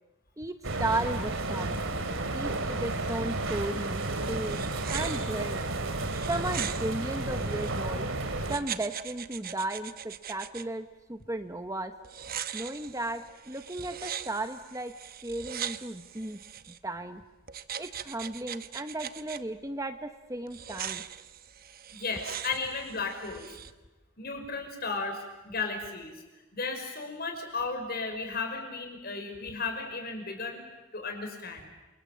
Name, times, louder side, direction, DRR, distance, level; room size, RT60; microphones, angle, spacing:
voice 1, 0.4-1.8 2.3-4.6 4.9-5.7 6.3-8.1 8.5-11.9 12.5-14.9 15.2-16.4 16.8-17.2 17.8-21.0, right 2 dB, 15° right, 8 dB, 1.0 m, -35 dB
sound 1, 0.6-8.6, right 2 dB, 60° right, 2.8 m, -32 dB
sound 2, 4.2-7.8 8.4-10.6 12.0-16.8 17.5-19.4 20.5-23.7, right 9 dB, 40° right, 1.0 m, -40 dB
voice 2, 21.9-23.5 24.2-30.6 30.9-31.7, left 4 dB, 45° left, 5 dB, 5.7 m, -35 dB
28.5 x 27.5 x 7.6 m, 1.1 s
head